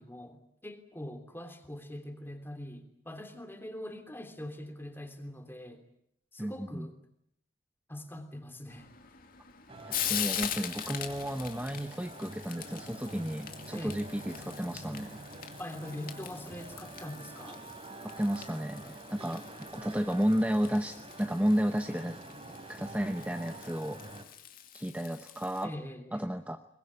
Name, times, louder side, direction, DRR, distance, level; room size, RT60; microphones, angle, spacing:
voice 1, 0.0-5.8 6.3-7.0 7.9-8.9 13.7-14.0 15.6-17.6 25.6-26.2, left 1 dB, 10° left, 6 dB, 3.1 m, -43 dB
voice 2, 6.4-6.9 9.9-15.2 18.2-22.2 22.7-24.0 24.7-25.7 26.1-26.6, equal, 10° right, 6 dB, 1.0 m, -32 dB
Frying (food), 8.7-25.6, left 10 dB, 50° left, 2.3 m, -42 dB
sound 1, 9.7-24.2, right 2 dB, 35° right, 3.5 m, -47 dB
Bowed string instrument, 12.6-17.6, equal, 65° right, 5.8 m, -53 dB
23.0 x 21.0 x 9.8 m, 0.75 s
head